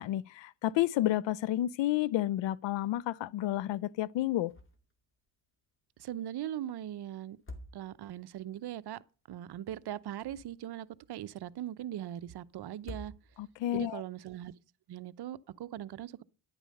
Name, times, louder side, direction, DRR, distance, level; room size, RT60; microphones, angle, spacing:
voice 1, 0.0-4.5 13.4-14.0, left 14 dB, 65° left, 0.6 m, -31 dB
sound 1, 4.5-5.0 5.3-5.4 7.2-8.3 10.0-10.9 12.7-13.7, left 1 dB, 25° left, 2.4 m, -48 dB
voice 2, 6.0-7.4 7.7-9.0 9.3-13.1 13.7-14.5 14.9-16.2, right 11 dB, 55° right, 0.8 m, -40 dB
11.0 x 8.9 x 6.6 m
cardioid pair, 85°, 49 cm